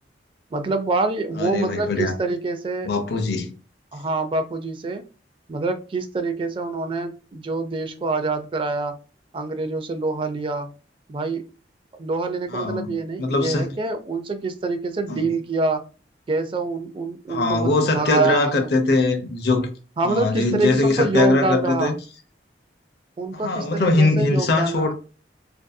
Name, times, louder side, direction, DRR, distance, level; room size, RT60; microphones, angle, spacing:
voice 1, 0.5-2.9 3.9-5.0 5.5-8.9 9.3-10.7 11.1-11.4 12.0-15.9 16.3-18.7 20.0-22.0 23.2-24.9, right 3 dB, 30° right, 0.3 m, -26 dB
voice 2, 1.4-2.1 2.8-3.5 12.5-13.7 15.1-15.3 17.3-19.7 20.0-21.9 23.3-24.9, left 3 dB, 60° left, 0.5 m, -21 dB
2.6 x 2.5 x 2.2 m
head